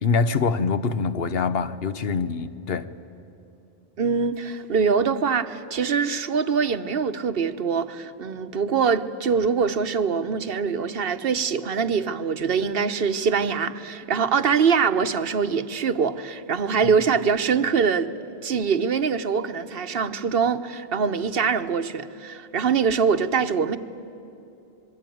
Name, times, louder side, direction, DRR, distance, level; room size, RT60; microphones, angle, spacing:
voice 1, 0.0-2.9 16.8-16.9, left 5 dB, 70° left, 1.1 m, -24 dB
voice 2, 4.0-18.1 18.4-23.8, right 6 dB, 70° right, 1.1 m, -23 dB
26.0 x 21.5 x 9.2 m
omnidirectional pair, 1.0 m